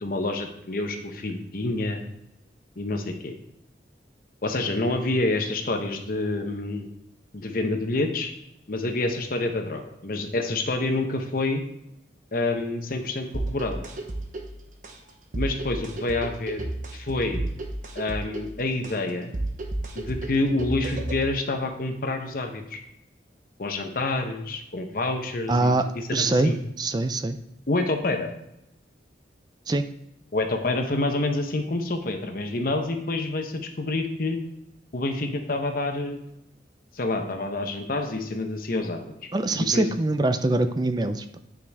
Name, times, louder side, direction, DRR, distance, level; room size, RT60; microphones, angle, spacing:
voice 1, 0.0-2.0 2.8-3.3 4.4-6.9 7.3-8.3 8.7-11.6 12.3-13.8 15.3-17.5 17.9-19.3 19.9-22.8 23.6-26.6 27.7-28.3 30.3-34.4 34.9-36.2 36.9-39.0 39.6-39.9, left 2 dB, 55° left, 5 dB, 0.9 m, -27 dB
sound 1, 13.3-21.3, right 1 dB, 45° right, 0.9 m, -33 dB
voice 2, 25.5-26.5 26.8-27.4 29.7-29.9 39.3-41.4, right 2 dB, 25° right, 10 dB, 0.4 m, -24 dB
9.5 x 5.1 x 3.5 m, 0.84 s
head